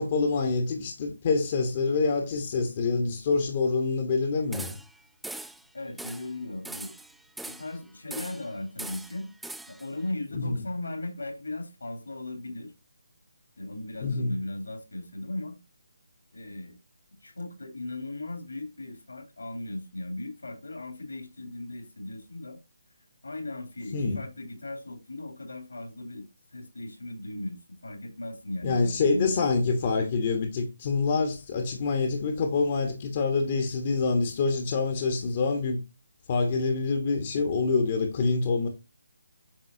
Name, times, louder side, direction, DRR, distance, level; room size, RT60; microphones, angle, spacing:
voice 1, 0.0-4.8 10.3-10.6 14.0-14.3 23.9-24.2 28.6-35.8 36.3-38.7, left 4 dB, 35° left, 1.3 m, -26 dB
sound 1, 4.5-5.0 5.2-5.6 6.0-6.3 6.6-7.8 8.1-8.5 8.8-9.9, right 2 dB, ahead, 0.3 m, -41 dB
voice 2, 5.7-6.9 7.4-9.3 9.7-12.7 13.6-15.6 16.3-16.8 17.2-22.6 23.2-26.2 26.5-29.4, left 2 dB, 75° left, 3.3 m, -37 dB
9.0 x 5.9 x 2.8 m
figure-of-eight pair, 145°, 0 cm